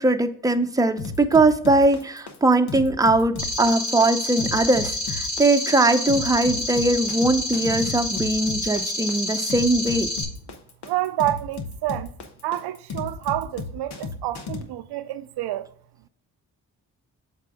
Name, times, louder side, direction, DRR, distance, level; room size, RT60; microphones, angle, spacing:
voice 1, 0.0-10.1, right 2 dB, 10° right, 0.6 m, -21 dB
sound 1, 1.0-14.6, left 4 dB, 80° left, 1.0 m, -34 dB
sound 2, 3.4-10.2, left 1 dB, 20° left, 3.0 m, -29 dB
voice 2, 10.9-12.1 12.4-15.7, right 14 dB, 80° right, 0.5 m, -28 dB
7.5 x 4.2 x 3.6 m
supercardioid pair, 45°, 39 cm